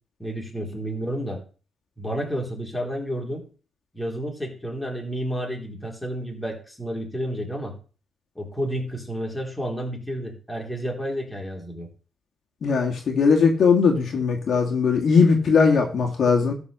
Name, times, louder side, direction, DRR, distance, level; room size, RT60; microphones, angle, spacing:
voice 1, 0.2-1.4 2.0-3.4 3.9-7.7 8.4-11.9, equal, 5° left, 0 dB, 3.8 m, -30 dB
voice 2, 12.6-16.5, left 5 dB, 55° left, 1 dB, 2.2 m, -19 dB
13.0 x 5.0 x 6.8 m, 0.38 s
cardioid pair, 90°, 0 cm